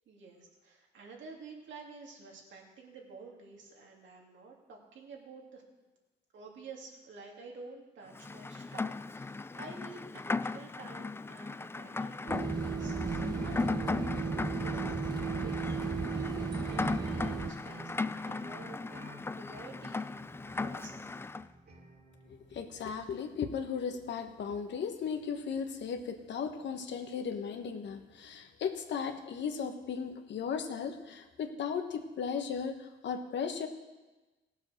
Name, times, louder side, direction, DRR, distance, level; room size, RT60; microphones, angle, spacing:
voice 1, 0.1-5.6 6.3-14.9 15.4-18.8 19.4-20.0 20.5-21.2, right 4 dB, 70° right, -1 dB, 2.9 m, -50 dB
Rain, 8.1-21.5, left 3 dB, 10° left, 0.3 m, -37 dB
sound 1, 12.3-17.5, right 4 dB, 20° right, 0.9 m, -34 dB
sound 2, 12.9-23.1, right 4 dB, 55° right, 2.6 m, -51 dB
voice 2, 22.3-33.7, left 6 dB, 65° left, 6 dB, 1.4 m, -36 dB
16.5 x 7.2 x 6.5 m, 1.2 s
cardioid pair, 90°, 20 cm